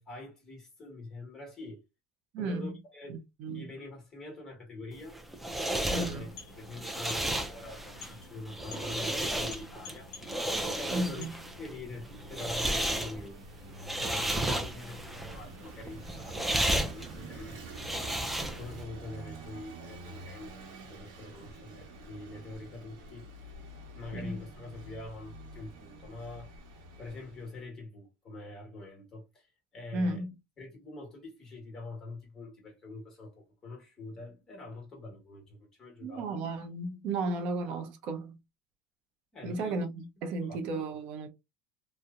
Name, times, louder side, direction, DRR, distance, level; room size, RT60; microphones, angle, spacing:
voice 1, 0.0-1.8 2.4-3.2 3.5-5.2 6.1-10.1 10.8-13.4 13.9-23.6 23.9-26.5 27.0-30.2 30.6-36.3 39.3-39.8 40.3-40.6, left 2 dB, 25° left, 1.3 m, -45 dB
voice 2, 2.3-2.7 3.1-3.7 5.9-6.3 10.9-11.3 24.1-24.4 29.9-30.3 36.0-38.4 39.4-41.3, right 2 dB, 60° right, 0.7 m, -34 dB
sound 1, 5.0-18.8, right 1 dB, 5° right, 0.4 m, -33 dB
sound 2, 6.0-11.8, left 4 dB, 75° left, 0.6 m, -51 dB
Vehicle / Engine, 11.2-27.6, right 2 dB, 80° right, 0.9 m, -48 dB
2.8 x 2.1 x 2.4 m
supercardioid pair, 120°, 2 cm